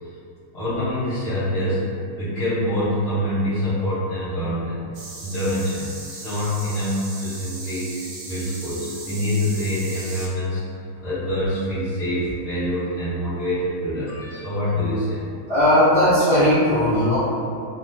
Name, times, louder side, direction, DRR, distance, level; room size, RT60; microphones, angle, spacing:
voice 1, 0.5-1.8 2.2-4.8 5.2-10.6 11.0-15.3, equal, 80° left, -15 dB, 2.1 m, -25 dB
sound 1, 4.9-10.3, right 2 dB, 75° right, 1.3 m, -37 dB
voice 2, 15.5-17.2, left 1 dB, 25° left, -14 dB, 0.8 m, -17 dB
4.2 x 2.1 x 2.6 m, 2.5 s
omnidirectional pair, 2.3 m